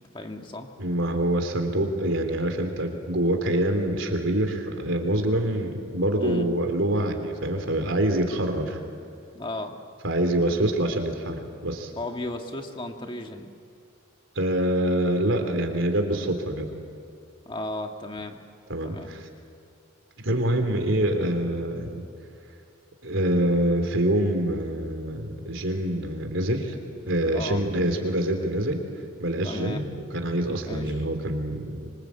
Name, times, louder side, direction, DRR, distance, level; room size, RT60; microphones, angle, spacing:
voice 1, 0.1-0.7 6.2-6.5 9.3-9.8 12.0-13.5 17.5-18.4 18.8-19.1 27.3-27.6 29.4-29.8 30.6-31.0, left 2 dB, 25° left, 4 dB, 1.8 m, -34 dB
voice 2, 0.8-8.8 10.0-11.9 14.3-16.7 18.7-19.3 20.2-22.0 23.0-26.8 27.0-28.8 29.2-29.9 30.1-31.6, right 1 dB, 70° right, 5 dB, 3.3 m, -25 dB
25.5 x 25.0 x 8.4 m, 2.4 s
head